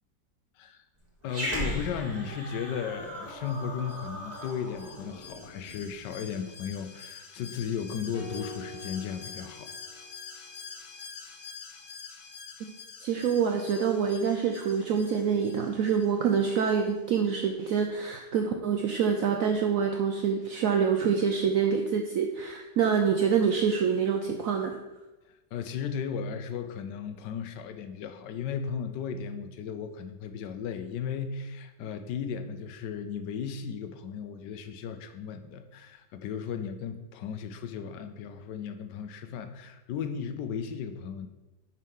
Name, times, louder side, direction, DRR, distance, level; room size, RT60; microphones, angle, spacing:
voice 1, 1.2-9.7 25.3-41.3, left 7 dB, 75° left, 8 dB, 1.2 m, -35 dB
Growling, 1.2-5.9, equal, 25° right, 1.4 m, -37 dB
Alarm, 3.4-16.9 17.2-17.3, left 5 dB, 60° left, 0.6 m, -47 dB
sound 1, 8.1-10.5, left 1 dB, 35° left, 1.0 m, -44 dB
voice 2, 13.0-24.8, right 6 dB, 75° right, 4 dB, 0.7 m, -26 dB
5.5 x 4.7 x 5.3 m, 1.1 s
omnidirectional pair, 1.9 m